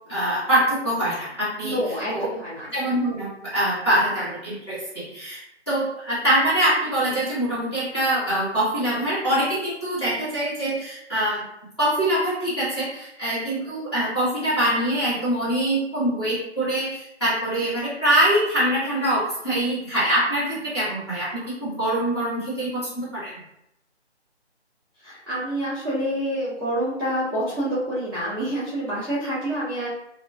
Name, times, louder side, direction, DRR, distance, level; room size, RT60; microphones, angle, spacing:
voice 1, 0.1-1.8 2.1-2.3 2.7-11.4 11.8-23.3, right 1 dB, 25° left, -11 dB, 1.0 m, -24 dB
voice 2, 1.6-2.7 25.0-29.9, right 1 dB, 20° right, -9 dB, 0.7 m, -27 dB
2.6 x 2.1 x 2.5 m, 0.81 s
figure-of-eight pair, 165°, 35 cm